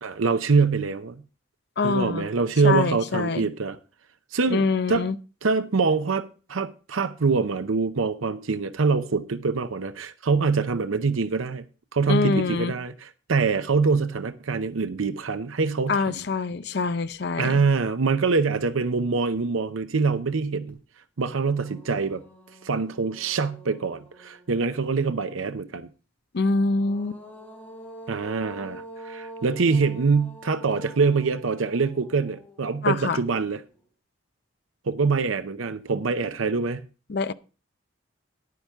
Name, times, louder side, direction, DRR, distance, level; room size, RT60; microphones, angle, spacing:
voice 1, 0.0-1.2 1.8-3.8 4.3-4.6 4.9-5.0 5.4-11.6 11.9-16.2 17.4-20.8 21.2-22.2 22.6-25.9 28.1-33.6 34.9-36.8, right 4 dB, 85° right, 0.7 m, -24 dB
voice 2, 1.8-2.3 2.6-3.5 4.5-5.2 12.1-12.7 15.9-17.6 26.3-27.2 32.8-33.2 37.1-37.3, left 4 dB, 55° left, 0.5 m, -25 dB
sound 1, 20.7-20.8 21.2-24.8 26.5-33.8, right 1 dB, 10° left, 3.1 m, -46 dB
10.5 x 9.4 x 3.5 m
head